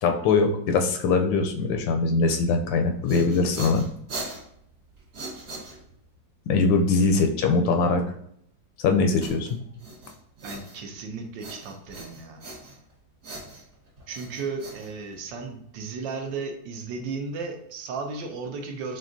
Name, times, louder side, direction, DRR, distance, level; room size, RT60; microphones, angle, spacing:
voice 1, 0.0-3.9 6.5-8.0 8.8-9.6, left 4 dB, 85° left, 5 dB, 1.3 m, -22 dB
sound 1, 2.8-6.2 9.2-11.0 11.4-12.9 13.2-15.5, right 2 dB, 55° right, 2.0 m, -40 dB
voice 2, 10.4-12.4 14.1-19.0, right 4 dB, 75° right, 4 dB, 1.3 m, -35 dB
6.0 x 2.4 x 2.5 m, 0.69 s
omnidirectional pair, 2.0 m